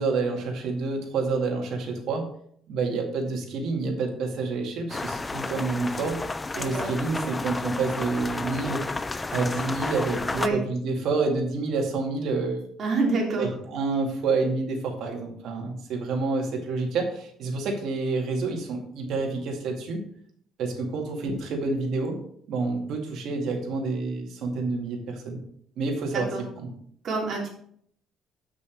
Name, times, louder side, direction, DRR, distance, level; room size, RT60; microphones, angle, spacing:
voice 1, 0.0-2.3 2.7-6.2 6.6-8.8 9.3-12.6 13.4-20.0 20.6-22.2 22.5-25.4 25.8-26.3 26.6-26.7, right 3 dB, 65° right, 1 dB, 2.2 m, -28 dB
sound 1, 4.9-10.5, left 3 dB, 15° left, 0.3 m, -32 dB
voice 2, 6.5-6.9 10.3-10.6 12.8-13.5 26.1-26.5 27.0-27.5, right 3 dB, 45° right, -1 dB, 2.8 m, -27 dB
7.9 x 6.2 x 4.5 m, 0.63 s
cardioid pair, 145°, 0 cm